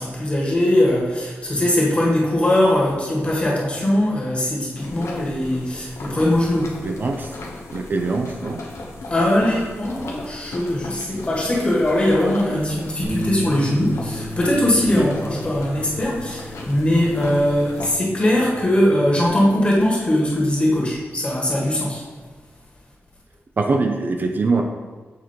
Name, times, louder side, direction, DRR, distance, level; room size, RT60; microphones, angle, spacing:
voice 1, 0.0-6.8 9.1-22.0, left 1 dB, 25° left, -4 dB, 1.8 m, -20 dB
sound 1, 4.8-17.9, left 2 dB, 90° left, 1.0 m, -36 dB
voice 2, 6.8-7.3 7.7-8.6 14.9-15.1 23.6-24.6, right 3 dB, 45° right, 3 dB, 0.5 m, -22 dB
Bass guitar, 13.0-19.3, equal, 20° right, 1.2 m, -34 dB
7.3 x 4.3 x 4.5 m, 1.4 s
wide cardioid pair, 155°, 5 cm